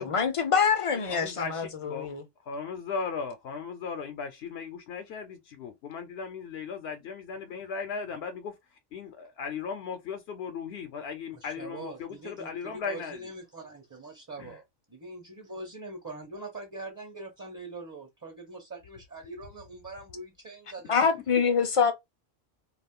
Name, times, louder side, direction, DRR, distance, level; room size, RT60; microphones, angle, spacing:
voice 1, 0.0-2.2 20.9-21.9, left 6 dB, 45° left, 0.4 m, -25 dB
voice 2, 1.1-2.1 2.4-13.3 14.4-14.6, left 5 dB, 75° left, 0.8 m, -37 dB
voice 3, 11.3-14.6 14.9-20.9, right 2 dB, 20° right, 0.6 m, -43 dB
2.4 x 2.3 x 3.6 m
omnidirectional pair, 1.1 m